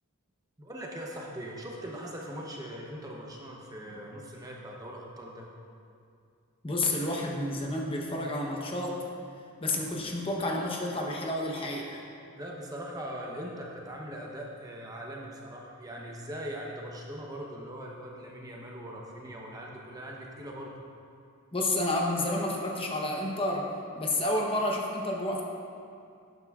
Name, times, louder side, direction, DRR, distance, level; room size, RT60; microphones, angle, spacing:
voice 1, 0.6-5.5 12.4-20.8, equal, 15° right, -2 dB, 0.8 m, -41 dB
voice 2, 6.6-9.0 9.6-12.0 21.5-23.7 24.0-25.4, left 1 dB, 25° left, -1 dB, 0.9 m, -30 dB
12.0 x 9.2 x 2.4 m, 2.4 s
head